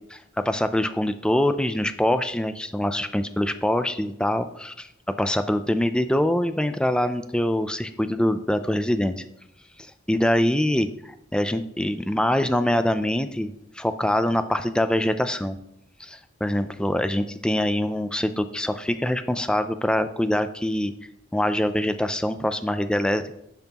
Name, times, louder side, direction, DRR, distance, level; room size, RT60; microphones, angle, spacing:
voice 1, 0.4-4.9 5.2-9.2 10.1-15.6 16.0-20.9 21.3-23.4, left 1 dB, 5° left, 10 dB, 0.4 m, -24 dB
10.5 x 5.8 x 2.9 m, 0.79 s
head